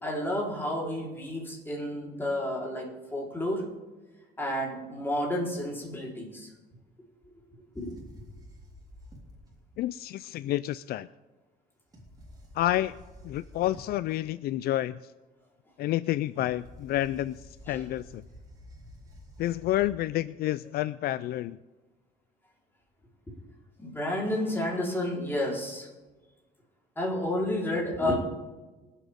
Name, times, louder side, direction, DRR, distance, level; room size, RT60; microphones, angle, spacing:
voice 1, 0.0-3.6 4.4-6.5 7.7-7.9 17.7-17.8 23.8-25.9 27.0-28.1, left 1 dB, 15° left, -3 dB, 4.0 m, -31 dB
sound 1, 7.7-9.8 11.9-14.1 16.3-19.9, equal, 20° right, 3.8 m, -50 dB
voice 2, 9.8-11.1 12.5-13.0 13.2-15.1 15.8-18.2 19.4-21.6, left 14 dB, 65° left, 16 dB, 0.4 m, -29 dB
24.5 x 8.4 x 3.6 m, 1.2 s
cardioid pair, 110°, 17 cm